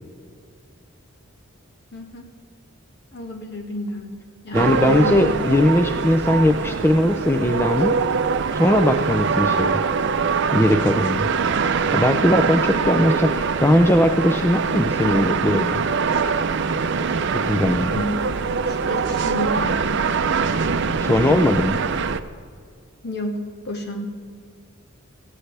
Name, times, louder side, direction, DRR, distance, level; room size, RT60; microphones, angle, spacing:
voice 1, 1.9-2.3 3.1-4.1 4.4-5.3 17.9-19.8 23.0-23.4 23.6-24.1, equal, 50° left, 2 dB, 1.9 m, -31 dB
voice 2, 4.5-8.0 8.5-9.8 10.5-11.3 11.9-15.9 17.3-18.0 21.0-21.8, left 1 dB, 10° left, 6 dB, 0.5 m, -19 dB
sound 1, 4.5-22.2, right 5 dB, 55° right, 0.5 m, -23 dB
18.0 x 15.0 x 3.4 m, 2.1 s
head